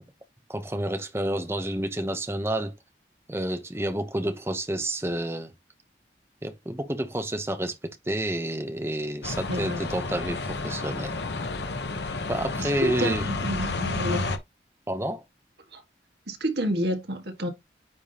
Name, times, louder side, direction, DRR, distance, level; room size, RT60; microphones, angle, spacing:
voice 1, 0.5-2.7 3.3-5.5 6.4-11.2 12.3-13.3 14.9-15.2, right 1 dB, 15° right, 0.8 m, -29 dB
sound 1, 9.2-14.4, left 3 dB, 75° left, 1.0 m, -31 dB
voice 2, 9.5-9.8 12.6-14.3 15.7-15.8 16.3-17.5, equal, 75° right, 1.8 m, -29 dB
9.7 x 3.6 x 2.9 m
head